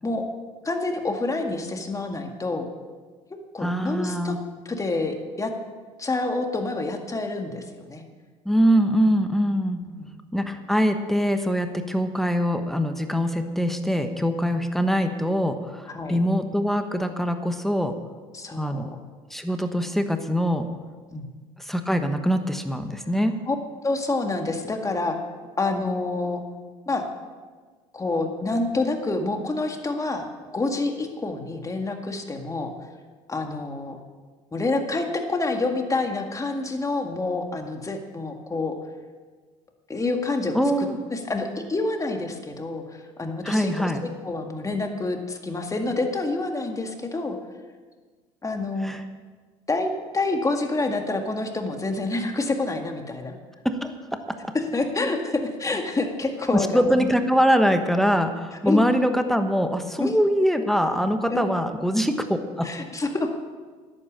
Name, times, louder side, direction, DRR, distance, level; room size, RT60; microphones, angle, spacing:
voice 1, 0.6-2.7 3.5-4.4 4.7-5.5 6.0-8.0 9.8-10.2 15.9-16.2 18.3-19.0 21.1-21.3 23.5-23.6 23.8-25.2 25.6-26.4 26.9-27.0 27.9-30.3 30.5-32.7 33.3-34.0 34.5-38.7 39.9-47.4 48.4-48.9 49.7-53.3 54.5-57.1 58.6-58.9 60.0-60.1 61.3-61.5 62.6-63.3, left 2 dB, 20° left, 4 dB, 1.9 m, -27 dB
voice 2, 3.6-4.4 8.4-9.8 10.3-17.9 18.6-18.9 19.3-20.7 21.7-23.4 40.5-41.0 43.4-44.0 48.8-49.0 53.6-54.4 56.7-62.7, equal, ahead, 7 dB, 1.1 m, -23 dB
11.0 x 8.9 x 7.4 m, 1.5 s
supercardioid pair, 80°, 15 cm